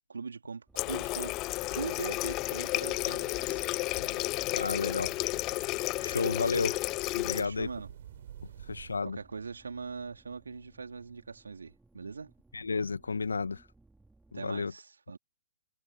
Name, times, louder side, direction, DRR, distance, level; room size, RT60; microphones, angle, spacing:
voice 1, 0.1-1.4 1.7-3.7 7.3-7.9 9.0-12.3 14.3-15.2, right 5 dB, 75° right, 3.4 m, -41 dB
sound 1, 0.7-14.4, right 2 dB, 5° right, 3.8 m, -63 dB
Water tap faucet, 0.8-7.4, left 20 dB, 30° left, 0.6 m, -32 dB
sound 2, 2.4-9.0, right 10 dB, 55° right, 3.8 m, -52 dB
voice 2, 4.5-5.1 5.8-6.8 7.1-7.7 8.7-9.2 12.5-13.6 14.3-14.7, left 4 dB, 80° left, 1.7 m, -32 dB
figure-of-eight pair, 120°, 0 cm